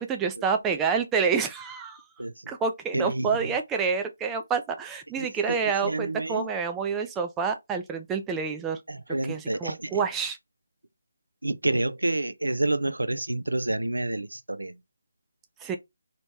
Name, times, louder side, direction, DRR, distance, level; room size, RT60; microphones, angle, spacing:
voice 1, 0.0-2.0 2.5-8.8 9.3-10.4 15.6-15.8, right 5 dB, 10° right, 0.4 m, -28 dB
voice 2, 2.2-2.5 2.9-3.5 5.2-6.5 8.9-10.0 11.4-14.8, right 2 dB, 85° right, 0.4 m, -29 dB
2.8 x 2.1 x 3.1 m
figure-of-eight pair, 155°, 0 cm